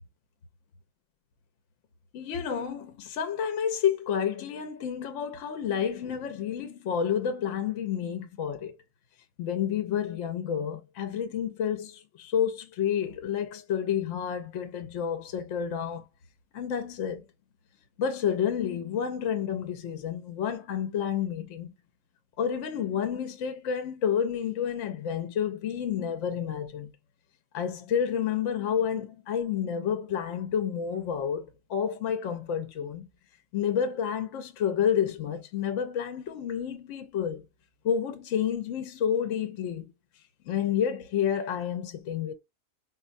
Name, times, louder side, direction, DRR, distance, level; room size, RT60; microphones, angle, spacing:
voice 1, 2.1-8.7 9.4-16.0 16.5-17.2 18.0-21.7 22.4-26.9 27.5-33.1 33.5-37.4 37.8-39.9 40.5-42.3, left 8 dB, 70° left, 0.9 m, -30 dB
4.0 x 2.1 x 2.4 m
omnidirectional pair, 1.4 m